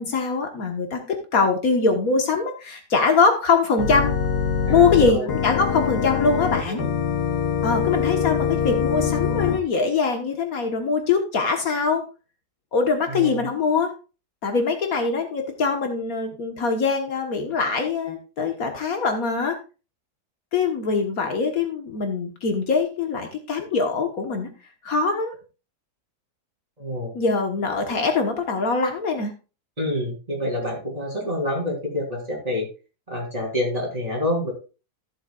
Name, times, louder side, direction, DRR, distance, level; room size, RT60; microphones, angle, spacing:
voice 1, 0.0-4.2 4.7-6.9 7.6-12.0 12.7-13.9 14.4-19.6 20.5-24.5 24.8-25.4 27.1-29.3, left 4 dB, 65° left, 4 dB, 1.7 m, -23 dB
Organ, 3.8-9.6, left 7 dB, 85° left, 1.6 m, -24 dB
voice 2, 4.7-5.3 6.7-6.9 13.1-13.5 26.8-27.1 29.8-32.7 33.1-34.5, left 1 dB, 25° right, -2 dB, 3.7 m, -27 dB
14.5 x 7.3 x 2.4 m, 0.32 s
omnidirectional pair, 1.7 m